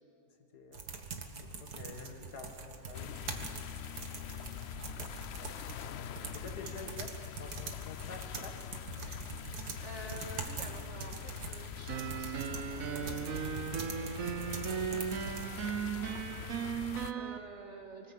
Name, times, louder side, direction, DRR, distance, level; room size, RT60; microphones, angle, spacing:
voice 1, 0.5-0.9 1.3-3.3 6.3-8.7, left 4 dB, 80° left, 4 dB, 2.3 m, -48 dB
sound 1, 0.7-15.5, right 4 dB, 80° right, 2.1 m, -44 dB
sound 2, 2.9-17.1, left 10 dB, 60° left, 0.7 m, -44 dB
voice 2, 6.1-6.4 9.1-18.1, right 2 dB, 45° right, 3 dB, 2.2 m, -51 dB
sound 3, 11.9-17.4, right 8 dB, 65° right, 1.2 m, -37 dB
24.5 x 19.5 x 8.4 m, 2.9 s
omnidirectional pair, 1.7 m